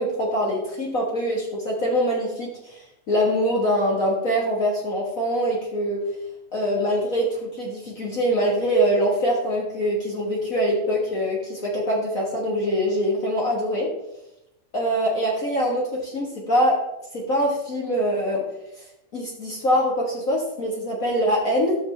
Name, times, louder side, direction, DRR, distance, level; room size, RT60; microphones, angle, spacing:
voice 1, 0.0-6.0 6.5-13.9 14.7-16.8 17.1-18.5 19.1-21.8, equal, 60° left, -3 dB, 0.8 m, -23 dB
13.5 x 6.3 x 3.3 m, 0.91 s
omnidirectional pair, 3.7 m